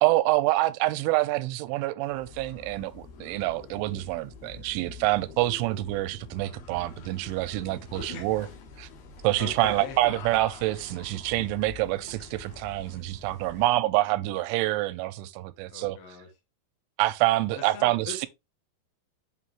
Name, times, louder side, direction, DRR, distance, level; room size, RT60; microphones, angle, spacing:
voice 1, 0.0-8.5 8.8-8.9 9.2-16.0 17.0-18.3, right 17 dB, 85° right, 3.0 m, -26 dB
sound 1, 2.1-13.8, left 5 dB, 60° left, 2.9 m, -46 dB
voice 2, 9.4-10.0 13.6-13.8 15.6-16.3 17.5-18.3, left 6 dB, 75° left, 4.4 m, -40 dB
8.4 x 5.7 x 3.1 m
omnidirectional pair, 5.5 m